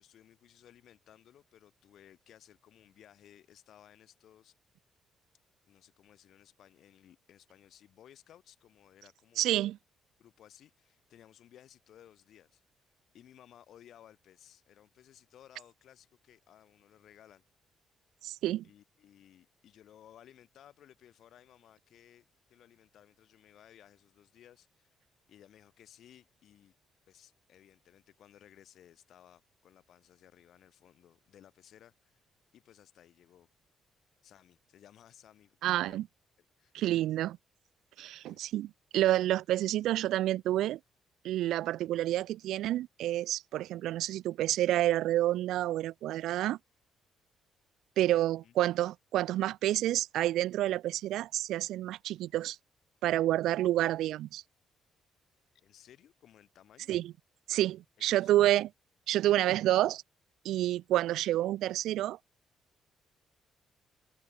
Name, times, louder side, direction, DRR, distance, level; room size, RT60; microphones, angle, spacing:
voice 1, 0.0-4.5 5.7-9.6 10.2-12.9 13.1-17.4 18.6-24.9 25.3-26.7 27.1-33.5 34.2-36.0 36.6-37.1 38.1-38.4 48.4-48.5 55.5-56.9 58.1-58.3, left 11 dB, 70° left, 2.8 m, -59 dB
voice 2, 9.4-9.8 18.2-18.6 35.6-36.0 36.7-37.4 38.0-38.7 38.9-40.8 41.2-46.6 48.0-52.6 53.0-54.4 56.9-57.1 57.5-58.7 59.1-60.0 60.4-62.2, right 14 dB, 85° right, 0.4 m, -29 dB
cardioid pair, 90°, 0 cm